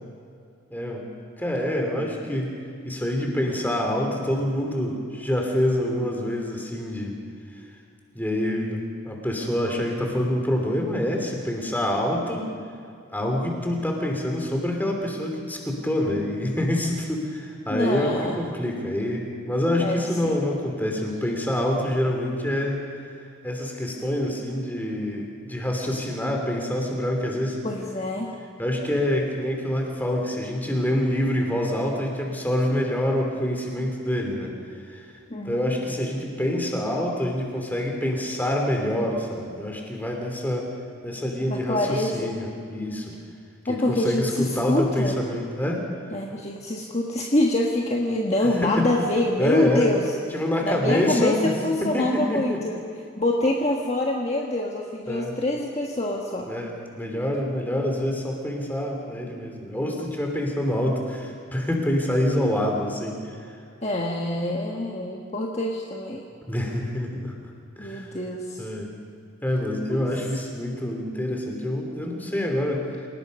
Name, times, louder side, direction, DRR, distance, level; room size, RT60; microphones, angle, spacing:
voice 1, 0.7-1.1 1.4-2.5 2.8-7.2 8.1-8.8 9.0-12.5 13.1-22.8 23.4-27.6 28.6-34.5 34.9-35.0 35.4-40.7 41.0-43.1 43.7-45.9 48.6-48.9 49.4-49.9 50.3-51.5 51.8-52.6 55.1-55.3 56.5-63.4 66.5-67.3 67.8-68.1 68.6-68.9 69.4-72.8, left 1 dB, 10° left, 1 dB, 3.0 m, -26 dB
voice 2, 17.7-18.4 19.8-20.4 27.6-28.3 35.3-35.7 41.5-42.3 43.7-45.1 46.1-50.1 50.6-52.8 53.2-56.5 63.8-66.2 67.8-68.7 69.9-70.0, left 1 dB, 30° left, -1 dB, 1.4 m, -25 dB
28.0 x 18.5 x 5.4 m, 2.4 s
head